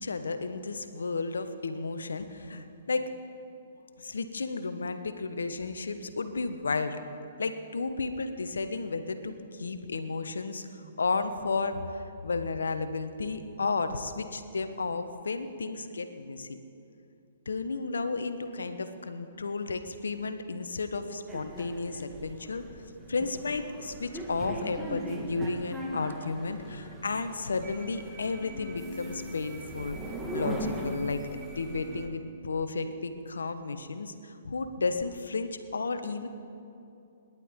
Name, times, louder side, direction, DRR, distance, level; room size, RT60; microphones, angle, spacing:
voice 1, 0.0-3.1 4.0-7.0 7.4-16.6 17.5-22.6 23.1-30.0 30.3-36.3, left 3 dB, 75° left, 9 dB, 1.1 m, -33 dB
sound 1, 21.3-32.1, right 1 dB, 10° right, 2.0 m, -39 dB
28.0 x 11.0 x 3.7 m, 2.7 s
figure-of-eight pair, 120°, 0 cm